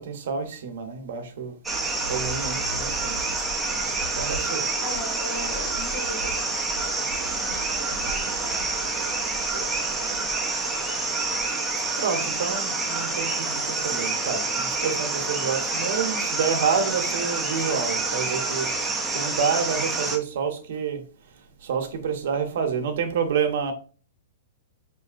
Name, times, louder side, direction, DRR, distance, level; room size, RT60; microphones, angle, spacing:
voice 1, 0.1-1.5 2.1-3.2 4.1-4.6 12.0-18.7 19.1-21.0 21.7-23.7, right 6 dB, 55° right, 0.8 m, -28 dB
sound 1, 1.6-20.2, right 3 dB, 5° right, 0.5 m, -27 dB
voice 2, 4.8-6.6 7.2-10.2, left 2 dB, 65° left, 1.9 m, -40 dB
5.2 x 2.6 x 2.4 m
supercardioid pair, 175°, 0 cm